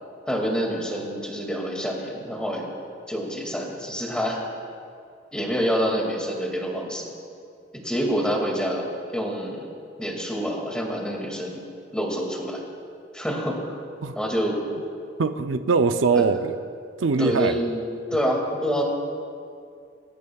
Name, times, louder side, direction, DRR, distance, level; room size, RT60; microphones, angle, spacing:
voice 1, 0.3-2.7 3.1-4.4 5.3-7.1 7.7-8.9 9.1-9.7 10.0-11.6 11.9-12.6 13.1-13.8 14.1-14.6 16.1-16.2 17.2-17.8 18.1-18.8, equal, 5° left, -1 dB, 2.2 m, -27 dB
voice 2, 15.2-16.6 17.0-17.6, right 4 dB, 85° right, 9 dB, 0.5 m, -22 dB
24.0 x 14.0 x 2.4 m, 2.4 s
head